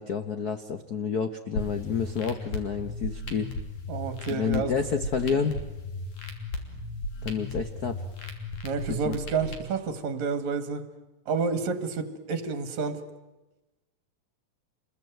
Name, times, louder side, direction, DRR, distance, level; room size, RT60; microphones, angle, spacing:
voice 1, 0.0-3.5 4.3-5.6 7.2-8.0 8.9-9.2, left 6 dB, 90° left, 8 dB, 0.8 m, -29 dB
sound 1, 1.5-9.5, left 2 dB, 75° left, 4.4 m, -36 dB
voice 2, 3.9-4.7 8.6-10.8 11.3-13.0, right 5 dB, 65° right, 10 dB, 3.1 m, -29 dB
28.0 x 21.5 x 9.3 m, 1.1 s
omnidirectional pair, 3.4 m